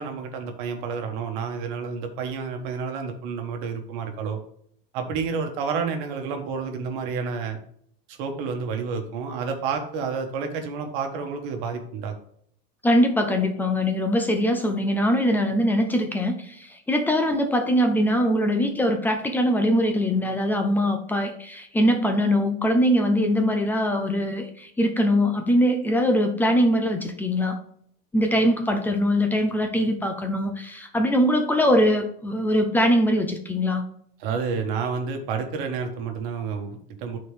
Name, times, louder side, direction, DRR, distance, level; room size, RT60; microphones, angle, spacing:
voice 1, 0.0-4.4 4.9-7.6 8.1-12.1 34.2-37.2, right 5 dB, 60° right, 4 dB, 1.4 m, -30 dB
voice 2, 12.8-27.6 28.1-33.8, equal, 5° left, 5 dB, 0.4 m, -22 dB
11.0 x 4.3 x 3.3 m, 0.65 s
supercardioid pair, 165°, 29 cm